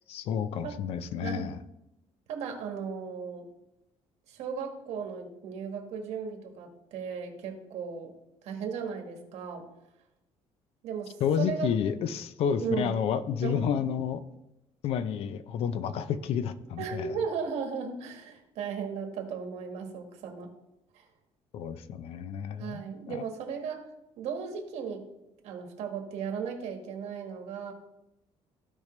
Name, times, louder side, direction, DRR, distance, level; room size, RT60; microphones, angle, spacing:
voice 1, 0.1-1.6 11.2-14.2 14.8-17.2 21.5-23.2, left 8 dB, 55° left, 13 dB, 0.5 m, -30 dB
voice 2, 1.2-1.6 2.3-3.5 4.3-8.1 8.4-9.6 10.8-11.7 12.6-12.9 13.4-13.7 16.8-20.5 20.9-21.0 22.6-23.9 24.2-25.0 25.4-27.7, right 6 dB, 70° right, 3 dB, 1.6 m, -36 dB
15.0 x 5.1 x 3.2 m, 0.88 s
cardioid pair, 165°, 12 cm